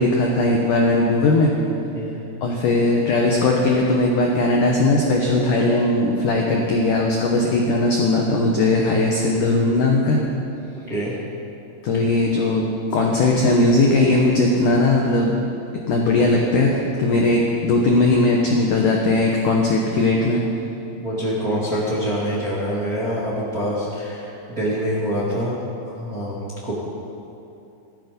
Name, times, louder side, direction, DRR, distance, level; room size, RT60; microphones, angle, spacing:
voice 1, 0.0-1.5 2.4-10.2 11.8-15.3 15.9-20.4, left 2 dB, 70° left, -1 dB, 2.0 m, -18 dB
voice 2, 21.0-25.6 25.9-26.7, equal, 30° right, -7 dB, 1.8 m, -25 dB
18.0 x 13.5 x 5.3 m, 2.7 s
omnidirectional pair, 5.4 m